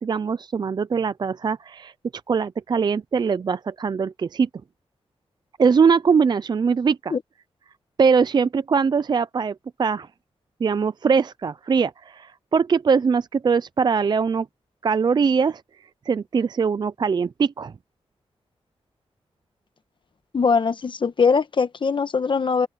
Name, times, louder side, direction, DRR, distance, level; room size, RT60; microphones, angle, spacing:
voice 1, 0.0-1.9 2.3-4.5 5.6-7.1 8.0-10.1 10.6-14.5 14.8-15.6 16.1-17.7, right 5 dB, 40° right, 0.4 m, -21 dB
voice 2, 20.3-22.7, left 5 dB, 50° left, 1.1 m, -21 dB
open air
wide cardioid pair, 115°, 11 cm